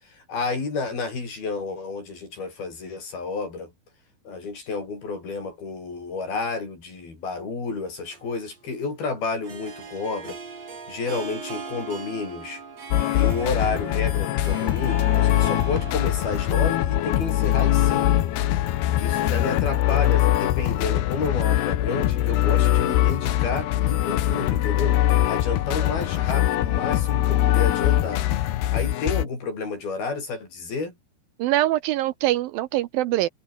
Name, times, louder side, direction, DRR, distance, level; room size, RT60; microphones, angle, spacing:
voice 1, 0.0-3.7 4.3-10.4 10.9-12.6 13.1-18.3 19.0-25.0 25.3-28.3 28.7-30.9, left 4 dB, 70° left, 9.9 m, -30 dB
Harp, 8.1-18.5, right 5 dB, 40° right, 5.0 m, -40 dB
sound 1, 12.9-29.2, left 13 dB, 85° left, 3.5 m, -22 dB
voice 2, 31.4-33.3, right 15 dB, 75° right, 2.3 m, -23 dB
omnidirectional pair, 4.6 m